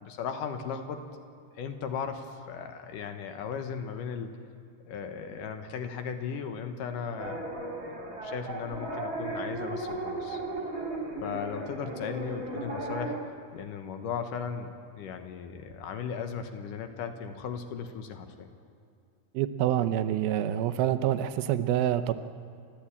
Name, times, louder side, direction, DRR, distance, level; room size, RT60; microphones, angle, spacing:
voice 1, 0.0-1.0 1.5-4.3 4.9-7.4 7.8-10.4 11.2-13.2 13.5-18.5, left 6 dB, 70° left, 7 dB, 2.5 m, -37 dB
sound 1, 7.2-13.2, right 2 dB, 25° right, 2.1 m, -36 dB
voice 2, 19.3-22.1, right 11 dB, 80° right, 9 dB, 2.6 m, -27 dB
29.5 x 12.0 x 8.5 m, 2.3 s
omnidirectional pair, 4.3 m